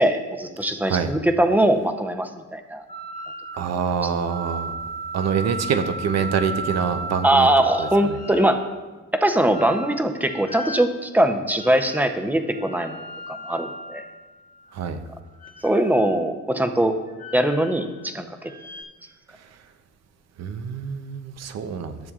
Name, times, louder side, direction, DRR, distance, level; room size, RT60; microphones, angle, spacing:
voice 1, 0.0-2.8 4.0-4.1 7.2-8.6 9.1-14.0 15.6-16.9 17.3-18.3, right 1 dB, 5° right, 6 dB, 0.7 m, -21 dB
sound 1, 2.9-3.8 4.2-8.6 9.5-10.9 11.6-12.1 12.5-14.7 15.3-16.2 17.1-18.1 18.4-18.8, right 2 dB, 25° left, 1.2 m, -36 dB
voice 2, 3.6-4.7 5.1-7.5 7.8-7.9 14.7-15.0 20.4-21.9, right 6 dB, 60° right, 9 dB, 0.7 m, -25 dB
12.5 x 6.9 x 2.5 m, 1.2 s
cardioid pair, 90°, 30 cm